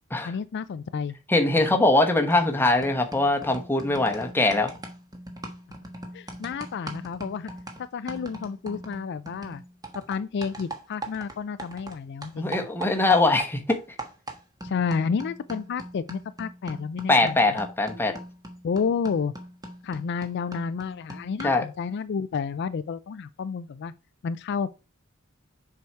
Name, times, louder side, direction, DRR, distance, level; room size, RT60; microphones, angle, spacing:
voice 1, 0.2-1.2 6.1-7.5 7.8-9.6 10.1-12.7 14.6-17.4 18.6-19.3 19.8-23.9 24.2-24.7, left 6 dB, 55° left, 0.4 m, -30 dB
voice 2, 1.3-4.7 12.4-13.8 17.1-18.2 21.4-21.6, left 2 dB, 10° left, 1.1 m, -22 dB
sound 1, 2.3-2.5 2.8-12.0 12.2-21.7, right 1 dB, 20° right, 1.3 m, -41 dB
7.0 x 4.7 x 4.5 m
head